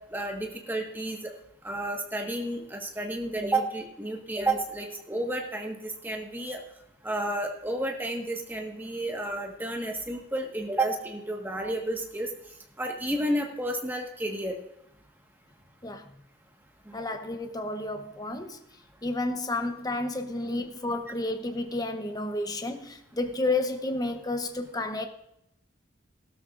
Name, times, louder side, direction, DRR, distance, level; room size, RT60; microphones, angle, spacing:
voice 1, 0.1-1.3 1.6-6.6 7.0-12.3 12.8-14.6 16.9-17.0, right 1 dB, 10° right, 2 dB, 1.4 m, -31 dB
voice 2, 16.9-18.6 19.0-25.1, left 2 dB, 20° left, 7 dB, 0.8 m, -31 dB
16.5 x 12.5 x 2.5 m, 0.80 s
head